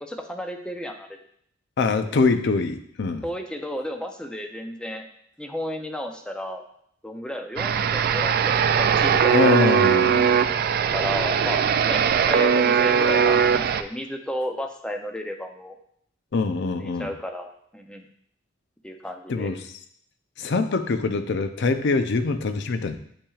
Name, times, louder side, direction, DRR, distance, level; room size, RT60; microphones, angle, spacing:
voice 1, 0.0-1.1 2.0-2.3 3.2-5.0 5.4-6.6 7.0-9.7 10.9-15.8 16.8-18.1 18.8-19.5, equal, 5° left, 4 dB, 0.5 m, -33 dB
voice 2, 1.8-3.2 9.3-10.3 16.3-17.1 19.3-19.6 20.4-23.0, left 4 dB, 60° left, 9 dB, 0.5 m, -24 dB
sound 1, 7.6-13.8, right 7 dB, 50° right, 0.3 m, -20 dB
8.3 x 5.9 x 2.4 m, 0.68 s
head